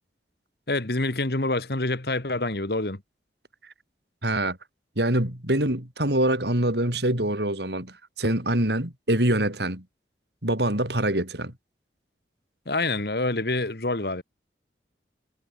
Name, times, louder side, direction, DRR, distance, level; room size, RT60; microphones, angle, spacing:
voice 1, 0.7-3.0 12.7-14.2, left 2 dB, 60° left, 1.9 m, -26 dB
voice 2, 4.2-4.6 5.0-9.9 10.4-11.5, right 1 dB, 65° right, 5.5 m, -25 dB
head